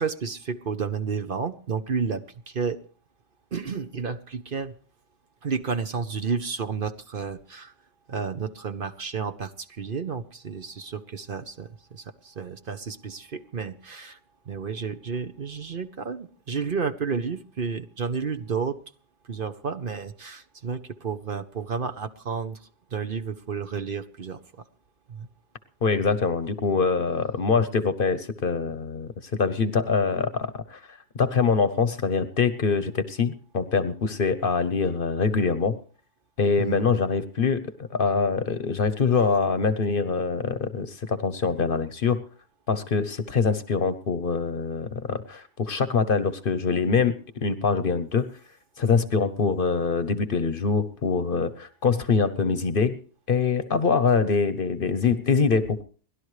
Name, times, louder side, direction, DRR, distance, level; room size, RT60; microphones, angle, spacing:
voice 1, 0.0-2.8 3.5-4.7 5.4-7.7 8.1-14.2 14.5-18.8 19.3-24.6 25.1-25.3 36.6-36.8, right 5 dB, 50° right, 8 dB, 1.0 m, -31 dB
voice 2, 25.8-35.8 36.4-42.2 42.7-48.3 48.8-53.0 53.3-55.8, left 5 dB, 50° left, 12 dB, 1.0 m, -24 dB
29.5 x 12.0 x 3.2 m, 0.42 s
omnidirectional pair, 1.3 m